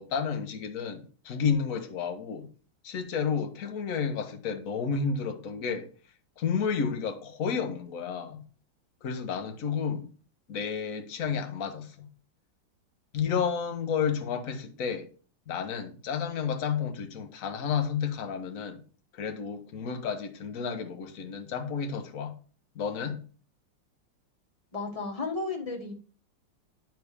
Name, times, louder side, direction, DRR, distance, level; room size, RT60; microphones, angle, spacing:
voice 1, 0.0-2.5 2.8-5.9 6.4-8.4 9.0-10.1 10.5-12.1 13.1-15.1 15.5-18.8 19.1-22.4 22.7-23.2, left 6 dB, 50° left, 1.3 m, -31 dB
voice 2, 24.7-25.9, left 3 dB, 20° left, 1.3 m, -33 dB
9.3 x 5.8 x 3.5 m
omnidirectional pair, 2.1 m